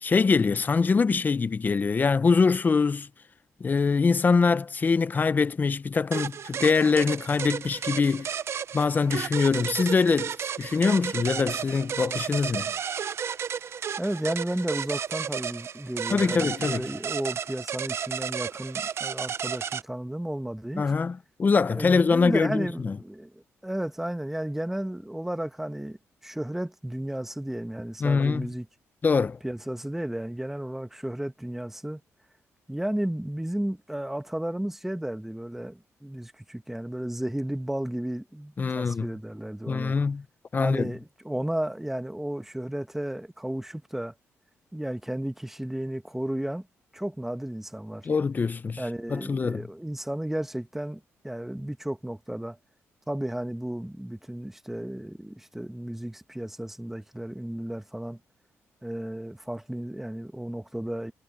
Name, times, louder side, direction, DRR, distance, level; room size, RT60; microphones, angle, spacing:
voice 1, 0.0-3.1 3.6-8.3 8.7-12.7 16.1-16.8 20.8-23.0 28.0-28.5 29.0-29.4 38.6-39.1 39.7-40.2 40.5-40.9 48.0-48.8 49.1-49.7, left 4 dB, 35° left, 0.7 m, -24 dB
sound 1, 6.1-19.8, right 7 dB, 55° right, 0.6 m, -33 dB
voice 2, 14.0-20.8 21.7-26.0 26.2-28.7 29.4-32.0 32.7-39.9 40.6-44.1 44.7-46.7 46.9-48.1 48.8-52.6 53.1-58.2 58.8-61.1, right 1 dB, 5° right, 1.4 m, -33 dB
cardioid pair, 90°, 5 cm